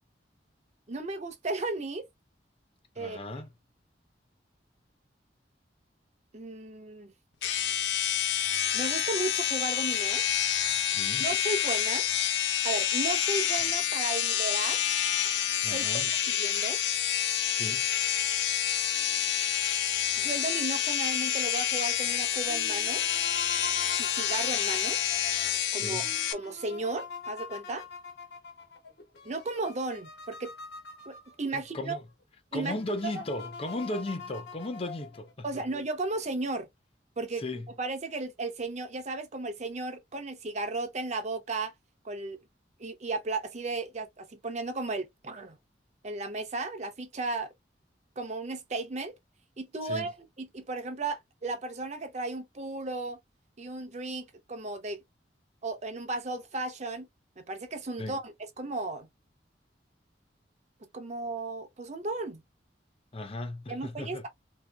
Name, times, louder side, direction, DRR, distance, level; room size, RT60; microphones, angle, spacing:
voice 1, 0.9-2.1 3.0-3.2 6.3-7.1 8.7-10.2 11.2-12.0 12.6-14.8 15.6-16.8 20.2-23.0 24.0-25.0 25.7-27.8 29.2-30.5 31.1-32.0 32.5-32.7 35.4-36.7 37.2-37.4 37.8-41.7 42.0-42.4 42.8-45.6 46.0-47.5 48.2-49.1 49.6-50.1 50.4-53.2 53.6-55.0 55.6-57.1 57.4-59.1 60.9-62.4 63.7-64.3, right 3 dB, 40° right, 0.7 m, -35 dB
voice 2, 3.0-3.5 10.9-11.2 15.6-16.1 17.5-17.8 25.8-26.1 31.5-32.0 32.5-35.6 37.4-37.7 49.8-50.1 58.0-58.2 63.1-64.2, left 1 dB, 35° left, 0.6 m, -36 dB
sound 1, 7.4-26.3, left 10 dB, 85° left, 0.6 m, -28 dB
sound 2, 22.5-31.7 32.2-32.3 32.6-35.3, left 4 dB, 65° left, 1.2 m, -44 dB
3.6 x 2.8 x 2.2 m
head